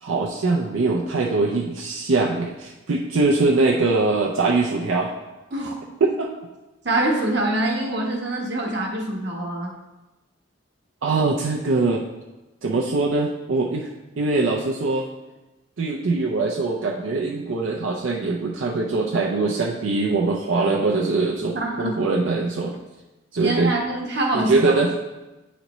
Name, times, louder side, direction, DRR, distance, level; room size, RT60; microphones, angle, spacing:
voice 1, 0.0-5.1 6.2-6.3 11.0-12.0 12.6-13.9 14.2-15.1 15.8-22.8 23.3-23.7 24.3-24.9, right 3 dB, 80° right, -1 dB, 0.5 m, -22 dB
voice 2, 6.8-9.7 21.5-22.0 23.4-24.7, right 1 dB, 60° right, -1 dB, 1.1 m, -25 dB
9.2 x 4.1 x 3.0 m, 1.1 s
head